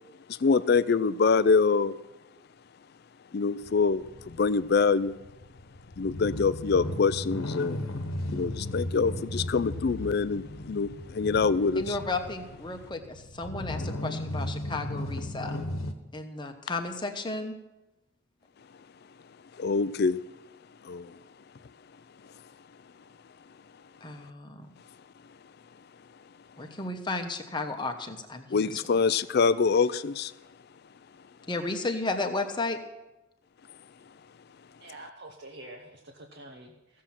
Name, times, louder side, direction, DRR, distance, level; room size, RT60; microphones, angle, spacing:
voice 1, 0.3-2.0 3.3-5.1 6.0-7.8 8.3-12.0 19.6-20.2 20.8-21.2 28.5-30.3, left 5 dB, 50° left, 0.4 m, -25 dB
sound 1, 3.6-15.9, left 1 dB, 90° left, 1.2 m, -36 dB
voice 2, 11.7-15.6 16.1-17.6 24.0-24.7 26.6-29.0 31.5-32.8, left 2 dB, 20° left, 1.0 m, -33 dB
voice 3, 34.8-37.0, right 1 dB, 55° right, 1.1 m, -47 dB
16.0 x 7.4 x 5.8 m
head